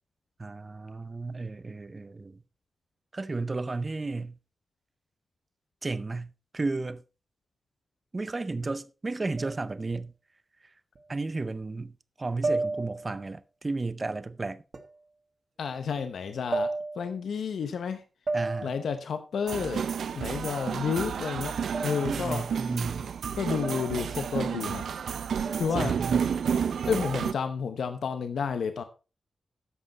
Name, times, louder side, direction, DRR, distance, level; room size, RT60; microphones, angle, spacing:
voice 1, 0.4-2.4 3.1-4.4 5.8-7.0 8.1-10.1 11.1-14.6 18.3-18.7 22.0-23.1 25.4-25.5 25.8-26.4, right 3 dB, 25° right, 0.5 m, -33 dB
sound 1, 9.4-9.8 11.0-11.1 12.4-13.2 14.7-15.0 16.5-17.2 18.3-18.9 21.7-22.2 23.6-24.0 25.5-25.9, right 3 dB, 40° right, 1.5 m, -32 dB
voice 2, 15.6-18.0 18.6-21.5 21.8-22.4 23.3-24.8 25.6-26.0 26.9-28.8, left 6 dB, 85° left, 0.9 m, -31 dB
sound 2, 19.5-27.3, right 7 dB, 90° right, 0.6 m, -31 dB
11.5 x 7.9 x 4.1 m
wide cardioid pair, 180°, 0 cm